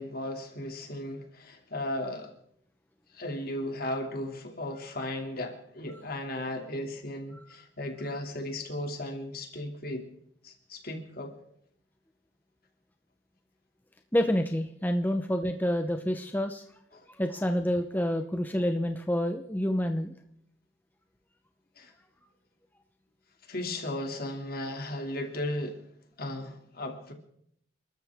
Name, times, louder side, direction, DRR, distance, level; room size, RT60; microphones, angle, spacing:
voice 1, 0.0-2.3 3.1-10.1 10.4-11.4 16.9-17.1 21.8-21.9 23.5-25.8 26.2-27.1, left 1 dB, 50° left, 4 dB, 2.6 m, -36 dB
voice 2, 14.1-16.6 17.2-20.1, equal, 10° left, 5 dB, 0.8 m, -28 dB
29.5 x 13.0 x 3.6 m, 0.72 s
head